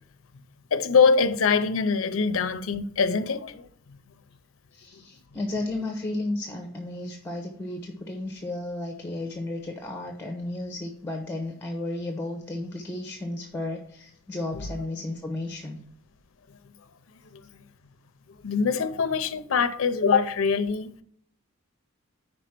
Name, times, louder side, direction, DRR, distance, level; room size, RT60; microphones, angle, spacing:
voice 1, 0.7-3.7 14.5-14.7 17.3-17.4 18.4-21.0, left 5 dB, 70° left, 0.5 m, -23 dB
voice 2, 4.7-15.8, left 2 dB, 10° left, 0.8 m, -33 dB
5.0 x 4.8 x 5.9 m
head